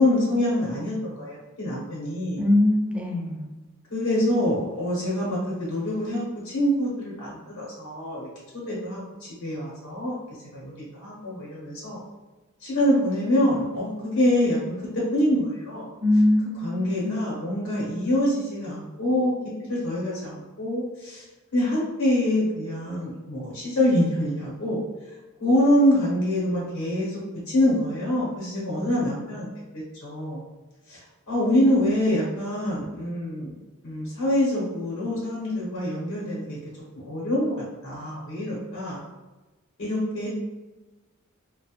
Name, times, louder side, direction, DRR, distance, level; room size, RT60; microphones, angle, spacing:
voice 1, 0.0-2.4 3.9-8.3 8.5-10.1 10.5-12.0 12.6-15.9 16.6-19.3 19.7-21.3 21.5-24.8 25.4-29.5 29.7-30.4 30.9-31.0 31.3-33.5 33.8-36.6 37.0-37.5 37.8-39.0 39.8-40.3, left 1 dB, 90° left, -6 dB, 0.8 m, -25 dB
voice 2, 2.4-3.5 16.0-17.3, left 1 dB, 5° right, -2 dB, 0.4 m, -22 dB
2.3 x 2.0 x 2.8 m, 1.1 s
head